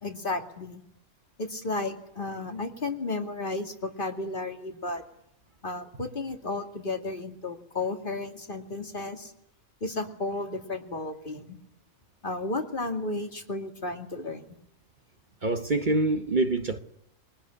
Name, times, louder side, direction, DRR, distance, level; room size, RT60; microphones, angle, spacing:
voice 1, 0.0-0.8 1.4-5.0 5.6-9.3 9.8-11.6 12.2-14.5, left 2 dB, 40° left, 2.5 m, -33 dB
voice 2, 15.4-16.8, right 2 dB, 40° right, 1.2 m, -25 dB
23.5 x 19.5 x 9.9 m
omnidirectional pair, 1.3 m